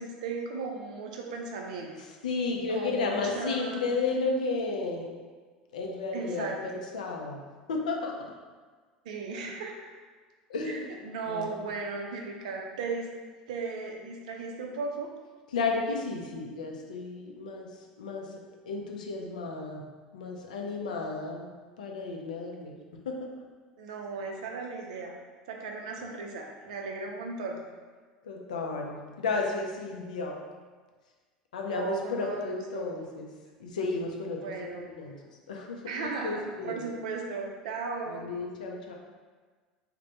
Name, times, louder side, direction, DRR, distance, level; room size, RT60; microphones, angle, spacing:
voice 1, 0.0-1.9 2.7-3.9 6.1-6.6 9.0-9.7 10.7-13.1 13.5-15.1 23.8-25.1 25.5-27.6 31.7-32.9 34.4-34.9 35.9-38.2, right 4 dB, 70° right, 1 dB, 0.4 m, -36 dB
voice 2, 2.2-5.1 5.7-7.4 7.7-8.1 10.5-10.9 11.3-11.5 15.5-17.7 18.0-18.3 18.7-19.9 20.1-21.5 21.8-22.7 23.1-23.2 28.2-30.4 31.5-33.3 33.6-35.2 35.5-35.8 36.2-36.9 38.1-38.9, left 3 dB, 75° left, 1 dB, 0.4 m, -33 dB
3.1 x 2.1 x 2.7 m, 1.5 s
figure-of-eight pair, 75°, 4 cm